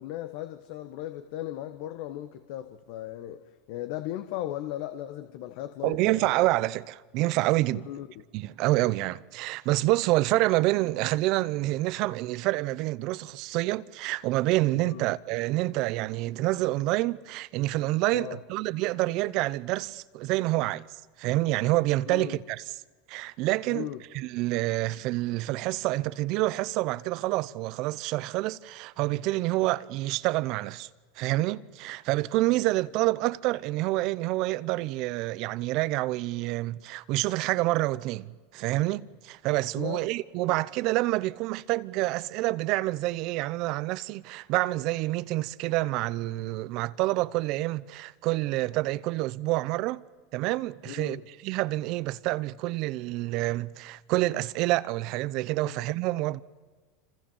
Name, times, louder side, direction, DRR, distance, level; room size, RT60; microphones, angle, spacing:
voice 1, 0.0-6.3 7.8-8.1 14.8-15.0 18.1-18.4 22.1-22.4 23.7-24.0 39.7-40.1 40.5-40.6 50.8-51.3 55.6-55.8, left 13 dB, 65° left, 1.4 m, -37 dB
voice 2, 5.8-7.9 8.3-20.9 21.2-22.6 23.1-23.9 24.1-30.9 31.2-50.0 50.3-56.4, right 18 dB, 55° right, 0.8 m, -27 dB
27.0 x 26.0 x 7.3 m
hypercardioid pair, 100°, 0 cm